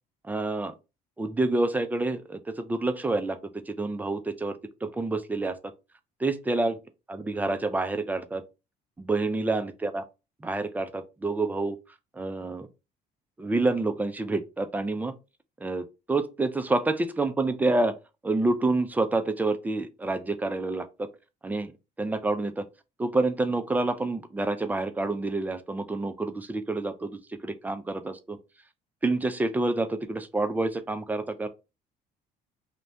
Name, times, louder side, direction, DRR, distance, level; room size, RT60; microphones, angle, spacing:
voice 1, 0.3-0.7 1.2-3.4 3.7-5.6 6.2-6.8 7.1-8.4 9.0-10.0 10.4-11.8 12.2-12.7 13.4-15.1 15.6-17.9 18.2-21.1 21.4-21.7 22.0-22.6 23.0-28.4 29.0-31.5, right 2 dB, 10° right, 0.3 m, -28 dB
2.6 x 2.2 x 3.2 m
cardioid pair, 110°, 17 cm